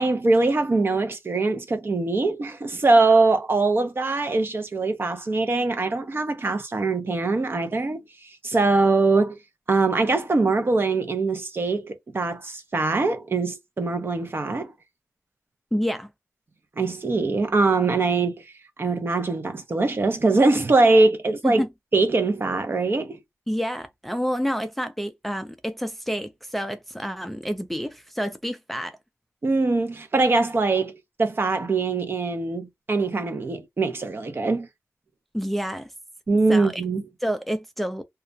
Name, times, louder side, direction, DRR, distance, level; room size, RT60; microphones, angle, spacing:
voice 1, 0.0-9.4 9.7-14.7 16.8-18.4 18.8-21.6 21.9-23.2 29.4-34.7 36.3-37.0, right 3 dB, 45° right, 0.6 m, -22 dB
voice 2, 15.7-16.1 21.4-21.7 23.5-29.0 35.3-35.9 36.5-36.8 37.2-38.0, equal, ahead, 0.4 m, -28 dB
2.3 x 2.0 x 2.6 m
wide cardioid pair, 75°, 5 cm